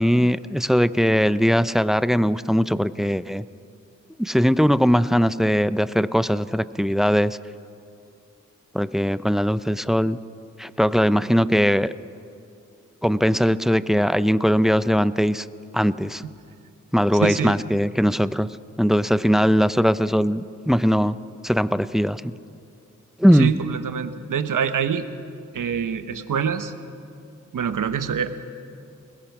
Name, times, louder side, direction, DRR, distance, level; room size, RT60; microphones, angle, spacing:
voice 1, 0.0-3.4 4.2-7.4 8.7-10.2 10.6-11.9 13.0-15.5 15.7-16.2 16.9-18.5 18.8-21.2 21.4-22.3 23.2-23.5, equal, ahead, 15 dB, 0.5 m, -20 dB
voice 2, 17.1-17.5 23.3-25.0 25.5-26.7 27.5-28.3, right 7 dB, 85° right, 10 dB, 1.1 m, -25 dB
22.0 x 21.0 x 6.0 m, 2.5 s
wide cardioid pair, 80°, 31 cm